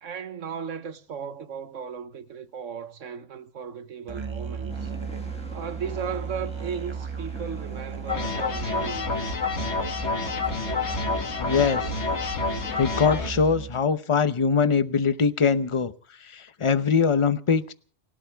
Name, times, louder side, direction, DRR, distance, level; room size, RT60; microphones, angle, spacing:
voice 1, 0.0-4.9 5.5-9.4, right 7 dB, 80° right, 1.5 m, -36 dB
Musical instrument, 4.1-13.9, right 6 dB, 25° right, 0.8 m, -36 dB
sound 1, 4.7-13.2, left 1 dB, 5° left, 1.9 m, -45 dB
sound 2, 8.1-13.3, left 4 dB, 60° left, 2.1 m, -28 dB
voice 2, 11.4-11.9 12.8-15.9 16.3-17.7, left 5 dB, 30° left, 0.7 m, -22 dB
30.0 x 12.5 x 3.5 m
omnidirectional pair, 1.3 m